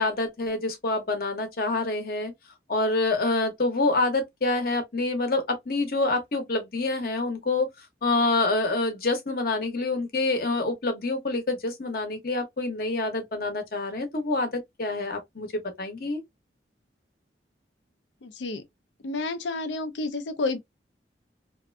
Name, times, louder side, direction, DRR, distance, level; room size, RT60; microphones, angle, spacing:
voice 1, 0.0-2.3 2.7-7.7 8.0-14.5 14.8-16.2, left 2 dB, 55° left, 0.8 m, -27 dB
voice 2, 18.2-18.6 19.0-20.6, left 3 dB, 85° left, 0.5 m, -30 dB
2.5 x 2.4 x 2.2 m
head